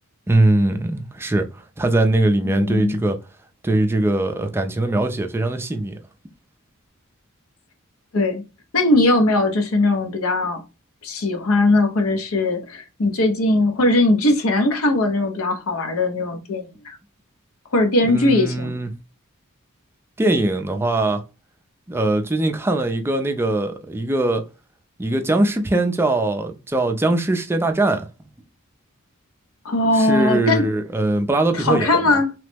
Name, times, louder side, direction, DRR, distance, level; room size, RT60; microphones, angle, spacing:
voice 1, 0.3-3.2 3.6-6.0 18.0-18.9 20.2-21.2 21.9-24.5 25.0-28.1 29.9-32.1, right 2 dB, 10° right, 0.3 m, -21 dB
voice 2, 2.4-3.0 8.1-8.4 8.7-10.6 11.0-17.0 17.7-18.8 29.6-30.6 31.5-32.3, left 2 dB, 85° left, 0.7 m, -19 dB
3.0 x 2.0 x 3.3 m
head